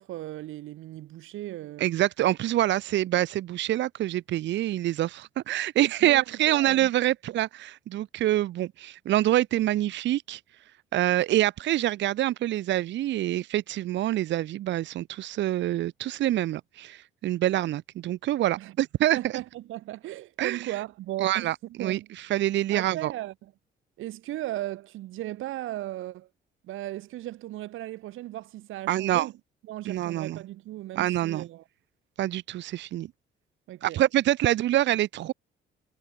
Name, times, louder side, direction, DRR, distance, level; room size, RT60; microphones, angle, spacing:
voice 1, 0.0-1.9 6.0-6.9 18.6-18.7 19.1-21.5 21.8-22.1 22.7-23.5 24.0-26.3 26.6-29.3 29.7-31.6 33.7-34.0, right 15 dB, 85° right, 2.3 m, -36 dB
voice 2, 1.8-10.4 10.9-19.3 20.4-20.6 21.2-23.1 28.9-29.3 29.9-30.4 31.0-31.4 32.2-33.1 33.8-35.3, right 14 dB, 65° right, 0.6 m, -26 dB
cardioid pair, 90°, 20 cm